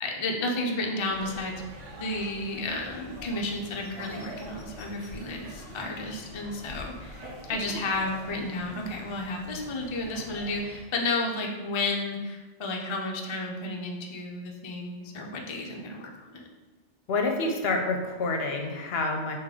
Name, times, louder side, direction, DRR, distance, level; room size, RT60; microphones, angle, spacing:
voice 1, 0.0-1.6 1.9-7.2 7.5-16.5, left 2 dB, 45° left, 0 dB, 0.3 m, -32 dB
sound 1, 1.0-10.8, equal, 90° right, 1.3 m, -44 dB
voice 2, 17.1-19.4, left 3 dB, 65° left, 3 dB, 0.8 m, -28 dB
3.7 x 3.0 x 4.8 m, 1.3 s
omnidirectional pair, 1.2 m